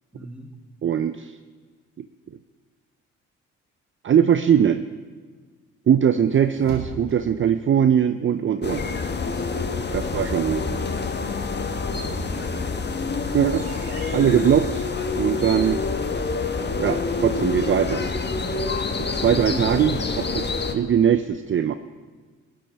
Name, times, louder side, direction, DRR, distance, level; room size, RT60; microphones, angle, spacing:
voice 1, 0.1-0.5 8.9-9.4 11.9-12.6 19.4-19.6, right 1 dB, 5° right, 2 dB, 2.4 m, -40 dB
voice 2, 0.8-1.4 4.0-4.9 5.9-8.9 9.9-10.9 13.3-13.6 14.1-14.9 15.1-15.8 16.8-18.0 19.2-20.0 20.3-21.7, right 8 dB, 35° right, 11 dB, 0.6 m, -21 dB
sound 1, 6.0-7.5 11.6-14.8, right 4 dB, 70° right, 2.1 m, -40 dB
sound 2, 8.6-20.7, left 4 dB, 30° left, 1.2 m, -27 dB
17.5 x 12.5 x 3.5 m, 1.5 s
hypercardioid pair, 50°, 34 cm